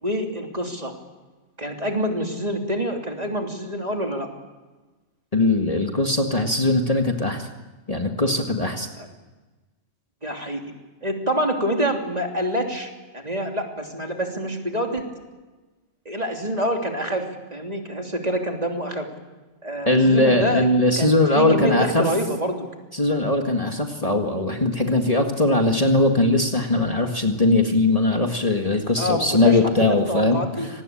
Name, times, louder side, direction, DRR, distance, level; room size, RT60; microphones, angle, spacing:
voice 1, 0.0-0.9 1.6-4.3 9.0-9.1 10.2-10.7 11.0-15.0 16.0-19.1 19.6-20.7 21.0-22.6 29.0-30.7, equal, 30° right, 2 dB, 3.2 m, -26 dB
voice 2, 5.3-7.5 7.9-8.9 19.9-22.0 22.9-30.4, left 2 dB, 30° left, 3 dB, 2.0 m, -20 dB
26.0 x 19.5 x 8.7 m, 1.2 s
omnidirectional pair, 1.3 m